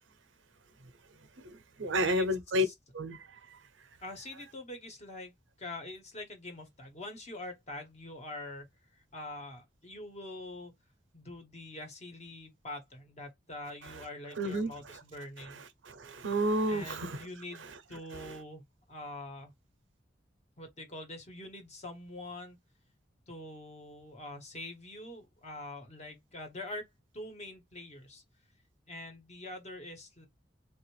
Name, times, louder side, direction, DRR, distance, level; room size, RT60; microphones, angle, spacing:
voice 1, 1.4-2.7 2.9-3.2 14.4-15.0 15.5-17.3 17.6-18.2, equal, 85° right, 0.7 m, -32 dB
voice 2, 4.0-8.7 9.1-10.7 11.1-15.6 16.7-18.6 18.9-19.5 20.6-22.6 23.3-26.9 27.1-28.2 28.9-30.3, left 1 dB, 35° left, 1.2 m, -44 dB
3.4 x 2.4 x 3.1 m
head